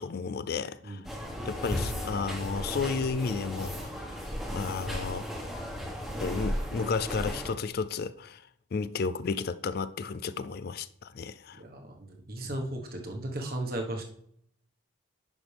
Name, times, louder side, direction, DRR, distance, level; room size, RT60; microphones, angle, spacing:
voice 1, 0.0-1.1 1.5-3.9 4.5-5.3 6.2-8.4 8.7-11.6, left 5 dB, 50° left, 0.4 m, -33 dB
voice 2, 0.8-1.3 11.5-14.0, right 1 dB, 45° right, 1.3 m, -36 dB
sound 1, 1.0-7.5, equal, ahead, 1.3 m, -35 dB
10.5 x 5.9 x 3.4 m
head